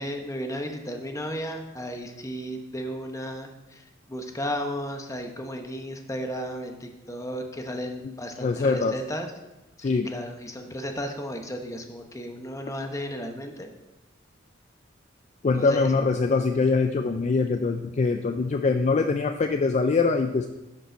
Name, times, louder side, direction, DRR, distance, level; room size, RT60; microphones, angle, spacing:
voice 1, 0.0-9.3 9.8-13.7 15.5-15.9, equal, 15° left, 4 dB, 0.9 m, -34 dB
voice 2, 8.4-8.9 9.8-10.1 15.4-20.5, left 4 dB, 35° left, 6 dB, 0.4 m, -23 dB
11.5 x 5.2 x 4.5 m, 1.0 s
head